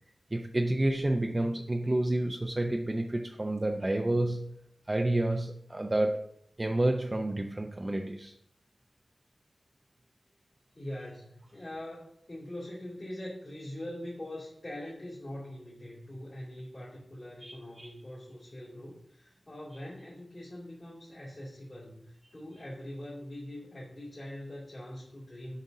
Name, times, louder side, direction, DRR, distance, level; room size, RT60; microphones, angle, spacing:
voice 1, 0.3-4.6 4.9-8.3 17.4-17.9, right 1 dB, 30° right, 3 dB, 0.6 m, -30 dB
voice 2, 10.7-25.6, left 1 dB, 45° left, -8 dB, 2.7 m, -43 dB
9.3 x 5.1 x 2.7 m, 0.72 s
wide cardioid pair, 60°, 0 cm